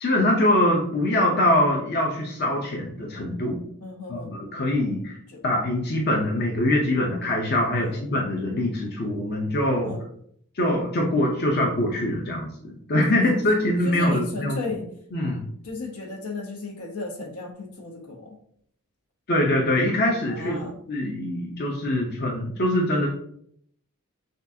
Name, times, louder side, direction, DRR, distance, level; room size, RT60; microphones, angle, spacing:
voice 1, 0.0-3.6 4.1-5.2 5.4-9.9 10.5-14.6 15.1-15.4 19.3-23.1, left 1 dB, 45° left, -1 dB, 0.7 m, -23 dB
voice 2, 3.8-4.3 5.3-5.4 7.8-7.9 9.8-10.1 13.1-14.9 15.6-18.4 20.2-20.8, left 3 dB, 85° left, 2 dB, 1.0 m, -35 dB
6.1 x 2.4 x 2.7 m, 0.66 s
head